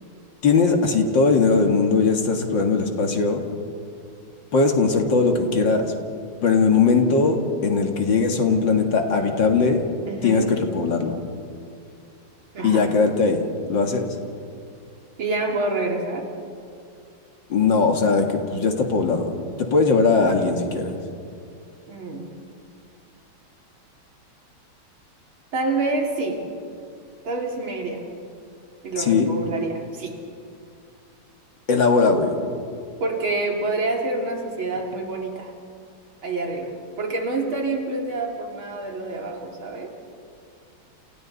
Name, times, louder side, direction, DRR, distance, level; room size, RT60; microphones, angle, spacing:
voice 1, 0.4-3.4 4.5-5.9 6.4-9.9 10.2-11.2 12.6-13.4 13.7-14.1 17.5-21.0 29.0-29.3 31.7-32.4, left 4 dB, 60° left, 4 dB, 2.6 m, -20 dB
voice 2, 10.1-10.5 12.5-12.8 15.2-16.2 21.9-22.3 25.5-26.4 27.2-28.1 28.8-30.1 33.0-35.5 36.2-39.9, right 2 dB, 75° right, 1 dB, 3.6 m, -27 dB
30.0 x 28.5 x 4.1 m, 2.4 s
omnidirectional pair, 2.3 m